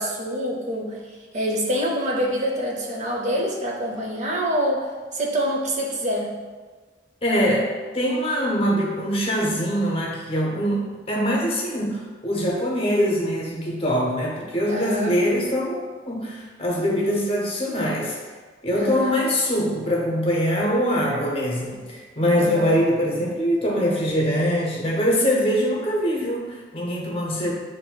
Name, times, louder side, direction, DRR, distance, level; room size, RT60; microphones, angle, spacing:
voice 1, 0.0-4.9 5.1-6.3 14.7-15.2 18.7-19.2 22.4-22.8, equal, 40° right, 0 dB, 0.6 m, -26 dB
voice 2, 7.2-18.2 18.6-27.5, equal, 30° left, -2 dB, 0.7 m, -23 dB
7.5 x 2.6 x 2.2 m, 1.4 s
head